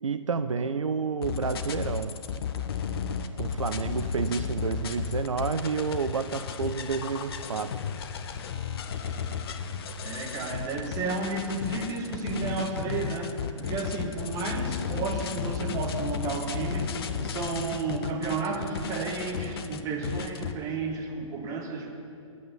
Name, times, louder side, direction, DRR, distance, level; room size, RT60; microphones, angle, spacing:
voice 1, 0.0-2.1 3.4-7.7, right 5 dB, 70° right, 11 dB, 0.5 m, -30 dB
sound 1, 1.2-20.5, left 7 dB, 45° left, 0.8 m, -33 dB
voice 2, 10.0-16.9 17.2-21.9, right 3 dB, 20° right, 2 dB, 1.6 m, -32 dB
10.5 x 8.4 x 9.8 m, 2.5 s
figure-of-eight pair, 125°, 17 cm